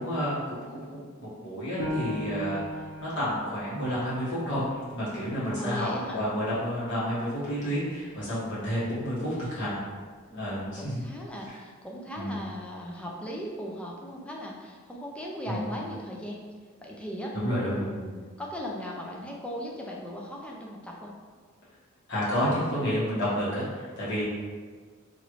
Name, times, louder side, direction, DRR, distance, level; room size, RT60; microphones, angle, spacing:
voice 1, 0.0-2.6 3.0-4.6 4.9-9.8 10.3-11.0 12.2-12.4 15.5-15.7 17.3-18.1 22.1-24.2, equal, 60° left, -10 dB, 1.5 m, -30 dB
Piano, 1.8-7.0 7.4-7.5 8.1-8.6, left 1 dB, 85° left, 0.7 m, -39 dB
voice 2, 5.6-6.2 10.3-16.4 16.8-17.3 17.6-21.1, equal, 5° left, -2 dB, 0.4 m, -38 dB
3.0 x 2.5 x 3.0 m, 1.5 s
head